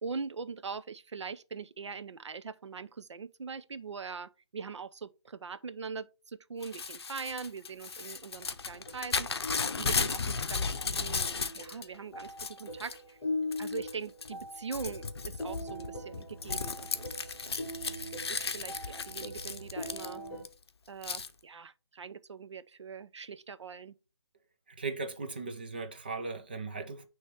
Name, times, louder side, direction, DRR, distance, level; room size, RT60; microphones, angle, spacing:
voice 1, 0.0-13.2 13.6-17.1 17.4-17.5 17.9-18.0 18.3-20.2 20.9-23.9, right 5 dB, 85° right, 0.6 m, -42 dB
Crumpling crinkling / Tearing, 6.6-11.8 12.2-13.0 13.5-13.9 14.2-20.5 21.0-21.3, left 5 dB, 65° left, 0.7 m, -35 dB
sound 1, 8.7-20.4, left 1 dB, 10° left, 1.7 m, -41 dB
voice 2, 24.8-27.0, right 4 dB, 20° right, 0.5 m, -37 dB
9.3 x 3.1 x 3.3 m
hypercardioid pair, 175°, 14 cm